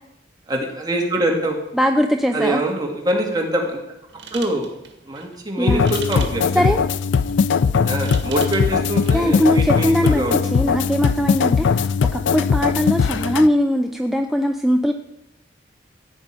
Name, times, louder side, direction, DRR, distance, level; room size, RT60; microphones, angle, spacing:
voice 1, 0.5-1.6 2.3-3.8 4.3-4.7 5.1-6.7 7.8-10.4 13.1-13.3, right 1 dB, 20° right, 0 dB, 2.1 m, -24 dB
voice 2, 1.8-2.6 5.6-5.9 6.6-6.8 9.1-10.2 10.5-14.9, equal, ahead, 4 dB, 0.5 m, -20 dB
sound 1, 4.1-10.0, right 6 dB, 70° right, 1.9 m, -41 dB
sound 2, 5.7-13.5, left 6 dB, 90° left, 0.4 m, -20 dB
15.5 x 5.3 x 8.9 m, 0.85 s
head